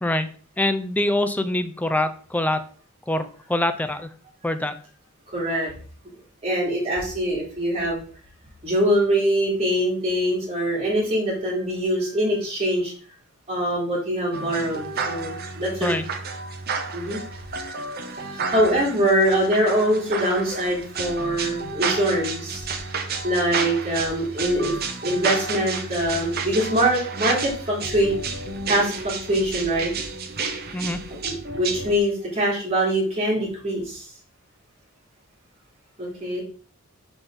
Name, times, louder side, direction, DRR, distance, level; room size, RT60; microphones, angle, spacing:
voice 1, 0.6-2.6 3.1-4.1 4.4-4.8 15.8-16.0 30.7-31.0, left 1 dB, 5° left, 9 dB, 0.4 m, -24 dB
voice 2, 5.3-5.7 6.4-8.0 8.6-12.9 13.5-16.0 16.9-17.4 18.2-22.6 23.2-24.7 25.0-28.1 28.7-29.9 31.1-34.1 36.0-36.4, right 1 dB, 25° right, -5 dB, 3.2 m, -23 dB
sound 1, 14.3-32.0, right 4 dB, 45° right, 0.9 m, -31 dB
6.1 x 5.1 x 3.7 m, 0.42 s
head